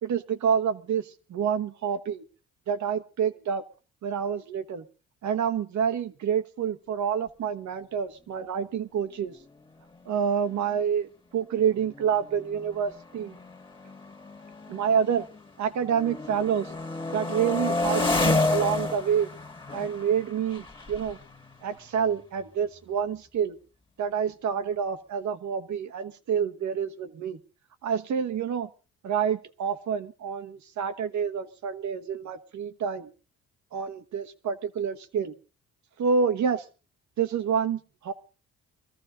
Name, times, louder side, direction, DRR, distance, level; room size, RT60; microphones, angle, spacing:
voice 1, 0.0-2.2 2.7-3.6 4.0-4.8 5.2-9.3 10.0-13.3 14.7-15.3 15.6-16.7 17.1-19.3 19.7-21.2 21.6-23.6 24.0-27.4 27.8-28.7 29.0-33.1 33.7-35.3 36.0-36.6 37.2-38.1, right 7 dB, 70° right, 9 dB, 1.4 m, -28 dB
sound 1, 10.1-10.2 10.4-10.8 11.5-15.5 15.8-22.5, left 2 dB, 15° left, 1.7 m, -31 dB
21.5 x 14.0 x 3.9 m, 0.36 s
cardioid pair, 90°, 30 cm